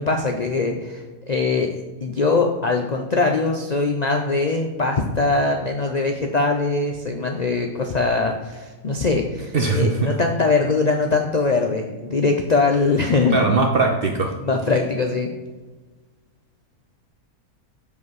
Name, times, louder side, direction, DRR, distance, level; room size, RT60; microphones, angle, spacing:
voice 1, 0.0-1.7 2.0-13.5 14.4-15.3, left 3 dB, 65° left, 3 dB, 0.4 m, -22 dB
voice 2, 9.5-10.1 13.3-14.3, right 4 dB, 55° right, 4 dB, 0.6 m, -20 dB
7.3 x 5.1 x 4.7 m, 1.3 s
omnidirectional pair, 1.6 m